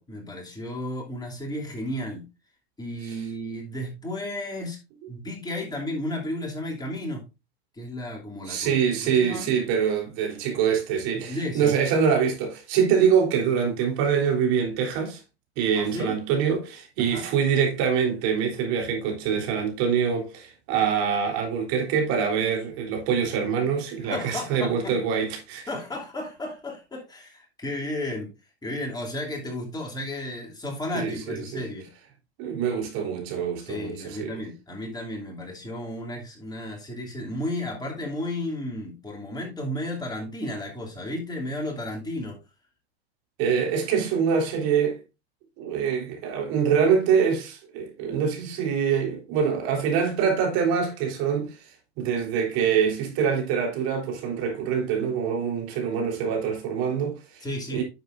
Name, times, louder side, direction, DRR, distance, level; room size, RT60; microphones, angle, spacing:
voice 1, 0.0-2.2 2.8-4.8 5.1-7.3 7.7-9.5 11.2-11.7 15.7-16.2 17.0-17.3 24.0-24.9 25.7-28.3 28.6-31.9 33.7-42.4 57.4-57.8, left 1 dB, 10° left, 2.9 m, -33 dB
voice 2, 8.5-15.2 15.6-25.6 30.9-31.6 32.4-34.4 43.4-45.0 45.6-51.6 52.0-57.8, right 7 dB, 55° right, 3.7 m, -25 dB
10.0 x 7.2 x 2.6 m
hypercardioid pair, 115°, 32 cm